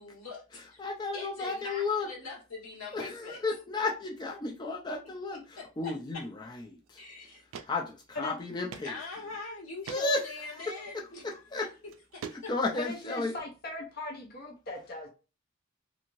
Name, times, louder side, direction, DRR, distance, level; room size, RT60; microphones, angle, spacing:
voice 1, 0.0-0.8 1.1-3.4 5.3-6.2 7.0-7.6 8.8-11.5 12.1-12.5, left 4 dB, 90° left, -4 dB, 1.5 m, -42 dB
voice 2, 0.8-2.1 2.9-7.0 7.7-8.9 9.9-10.6 10.9-11.7 12.3-13.4, left 3 dB, 20° left, 0 dB, 0.3 m, -33 dB
sound 1, 6.9-7.0 7.5-7.7 8.0-8.1 8.7-8.9 9.3-9.4 9.8-10.0 11.2-11.3 11.9-12.7, right 6 dB, 75° right, 0.3 m, -42 dB
voice 3, 12.8-15.1, left 2 dB, 45° left, -2 dB, 0.8 m, -39 dB
3.0 x 2.7 x 2.6 m, 0.32 s
head